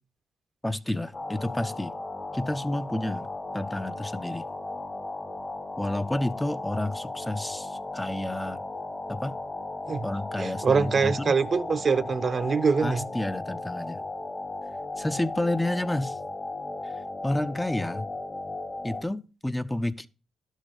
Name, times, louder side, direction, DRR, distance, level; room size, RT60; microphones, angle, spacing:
voice 1, 0.6-1.9 2.3-3.3 3.5-4.5 5.8-8.6 9.1-9.4 10.0-11.4 12.8-14.1 15.0-16.2 16.8-18.1 18.8-20.1, left 1 dB, 10° left, 0.7 m, -30 dB
sound 1, 1.1-19.0, left 2 dB, 35° left, 1.4 m, -36 dB
voice 2, 10.4-13.0, right 5 dB, 50° right, 0.8 m, -24 dB
11.5 x 6.5 x 4.9 m
supercardioid pair, 50°, 0 cm